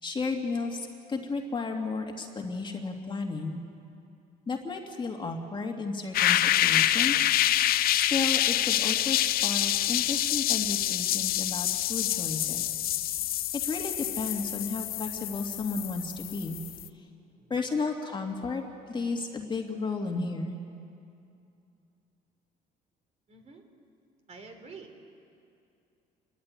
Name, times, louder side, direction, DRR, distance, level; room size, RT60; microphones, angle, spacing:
voice 1, 0.0-3.6 4.5-7.2 7.9-12.7 13.1-13.2 13.5-16.6 17.5-18.6 18.9-20.5, left 4 dB, 30° left, 2 dB, 2.3 m, -33 dB
sound 1, 6.1-16.9, left 13 dB, 65° left, 0.6 m, -27 dB
voice 2, 23.3-23.6 24.3-24.9, right 4 dB, 40° right, 4 dB, 3.4 m, -48 dB
29.0 x 13.5 x 9.8 m, 2.6 s
cardioid pair, 110°, 17 cm